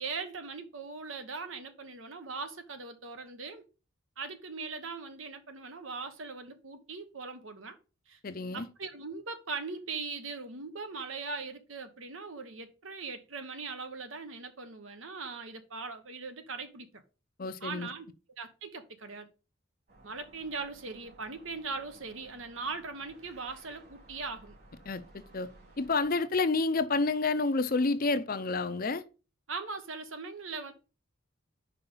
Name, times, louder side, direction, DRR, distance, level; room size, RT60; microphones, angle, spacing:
voice 1, 0.0-3.6 4.2-7.8 8.1-8.2 8.5-17.0 17.6-18.1 18.4-19.3 20.0-24.6 29.5-30.7, right 4 dB, 75° right, 1.1 m, -40 dB
voice 2, 8.2-8.7 17.4-17.9 24.8-25.5 25.8-29.0, left 3 dB, 45° left, 0.6 m, -29 dB
sound 1, 19.9-26.1, right 2 dB, 50° right, 3.0 m, -57 dB
5.5 x 5.1 x 5.5 m
head